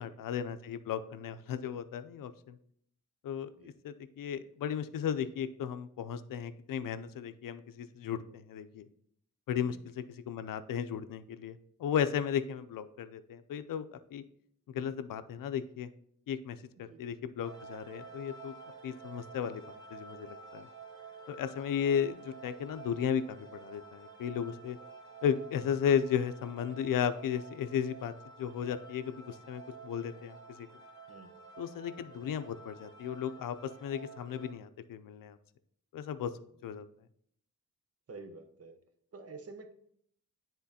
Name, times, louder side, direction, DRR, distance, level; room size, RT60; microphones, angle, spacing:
voice 1, 0.0-2.6 3.2-8.9 9.5-13.9 14.1-14.2 14.7-15.9 16.3-18.5 18.8-20.7 21.3-24.8 25.2-28.1 28.4-30.7 31.6-35.4 35.9-36.3 36.6-36.9, left 8 dB, 85° left, 12 dB, 0.5 m, -35 dB
sound 1, 17.4-34.5, right 4 dB, 15° left, 1.6 m, -51 dB
voice 2, 38.1-38.8 39.1-39.7, right 3 dB, 45° right, 6 dB, 0.9 m, -49 dB
9.7 x 3.7 x 2.8 m, 0.67 s
cardioid pair, 90°, 33 cm